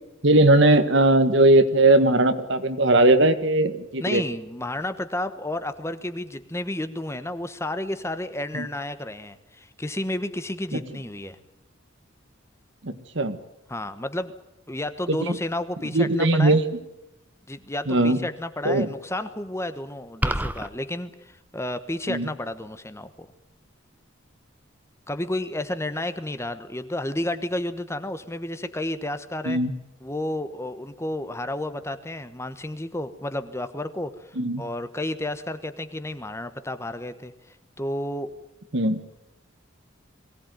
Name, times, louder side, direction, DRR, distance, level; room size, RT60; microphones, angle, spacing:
voice 1, 0.2-4.2 8.5-8.6 12.8-13.4 15.1-15.4 15.9-16.7 17.9-18.2 18.6-18.9 22.1-22.3 29.4-29.7 34.4-34.6 38.7-39.0, right 2 dB, 60° right, 10 dB, 1.7 m, -19 dB
voice 2, 4.0-11.4 13.7-14.3 14.7-16.6 17.5-23.3 25.1-29.6 30.0-38.3 38.8-39.1, left 1 dB, 15° left, 11 dB, 1.1 m, -31 dB
sound 1, 20.2-20.7, right 1 dB, 10° right, 0.9 m, -25 dB
22.0 x 17.5 x 9.3 m, 0.91 s
head